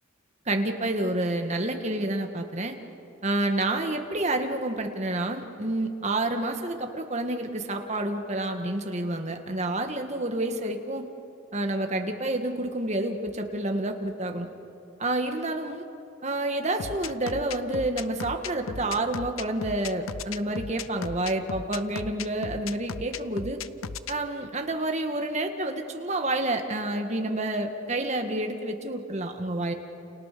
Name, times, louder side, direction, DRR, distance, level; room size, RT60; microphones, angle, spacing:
voice 1, 0.5-2.7 3.2-11.1 11.5-14.5 15.0-15.8 16.2-23.6 24.1-29.7, right 2 dB, 30° right, 4 dB, 1.9 m, -29 dB
sound 1, 16.8-24.1, left 5 dB, 80° left, 0.7 m, -36 dB
29.5 x 29.0 x 6.9 m, 2.8 s
head